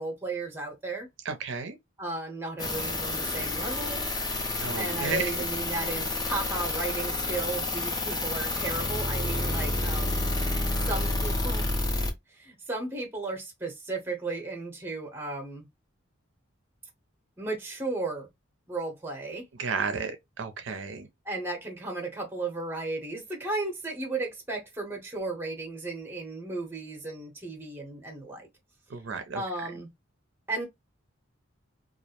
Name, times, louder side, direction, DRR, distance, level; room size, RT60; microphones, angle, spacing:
voice 1, 0.0-1.1 2.0-4.1 4.8-10.2 10.8-11.8 12.3-15.7 17.4-18.3 18.7-19.4 21.2-28.5 29.3-29.9 30.5-30.6, right 2 dB, 10° right, 0.7 m, -34 dB
voice 2, 1.2-1.8 4.6-5.3 19.6-21.1 28.9-29.4, right 5 dB, 65° right, 0.4 m, -32 dB
sound 1, 2.6-12.1, left 2 dB, 20° left, 0.4 m, -29 dB
2.3 x 2.0 x 2.8 m
head